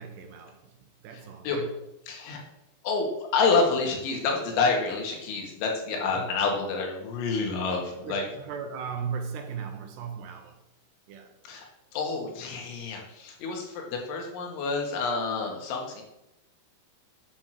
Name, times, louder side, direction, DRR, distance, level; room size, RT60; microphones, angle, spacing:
voice 1, 0.0-1.7 6.1-6.3 8.0-10.6 11.1-11.3, right 6 dB, 75° right, 5 dB, 2.9 m, -37 dB
voice 2, 2.1-2.4 2.8-8.2 11.4-11.7 11.9-16.0, left 4 dB, 80° left, 1 dB, 4.1 m, -28 dB
8.7 x 5.9 x 6.3 m, 0.86 s
omnidirectional pair, 5.3 m